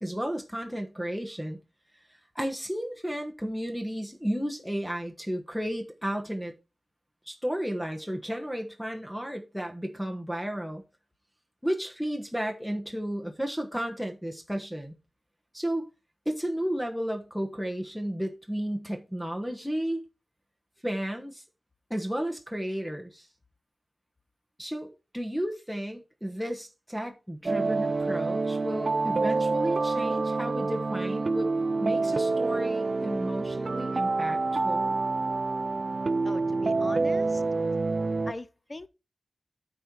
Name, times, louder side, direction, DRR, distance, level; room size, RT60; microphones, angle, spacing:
voice 1, 0.0-1.6 2.3-6.5 7.3-10.8 11.6-15.0 15.5-15.9 16.2-20.0 20.8-21.4 21.9-23.3 24.6-31.5 31.8-34.4 34.6-34.9, equal, ahead, 1.2 m, -33 dB
sound 1, 27.5-38.3, right 3 dB, 50° right, 0.3 m, -27 dB
voice 2, 36.2-37.4 38.3-38.9, left 2 dB, 30° left, 0.5 m, -40 dB
9.0 x 4.4 x 4.7 m
wide cardioid pair, 100°, 0 cm